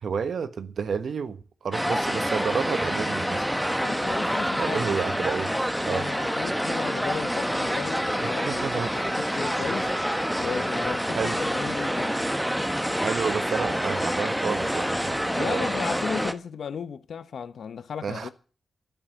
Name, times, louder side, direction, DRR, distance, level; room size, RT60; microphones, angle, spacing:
voice 1, 0.0-3.5 4.6-5.5 5.8-6.1 8.2-8.9 11.1-11.4 13.0-15.6 18.0-18.3, right 6 dB, 65° right, 1.3 m, -30 dB
sound 1, 1.7-16.3, equal, 5° right, 1.1 m, -27 dB
voice 2, 3.8-4.9 5.8-10.0 10.4-12.2 15.4-18.3, left 7 dB, 70° left, 1.0 m, -35 dB
11.5 x 9.8 x 8.1 m
wide cardioid pair, 100°, 0 cm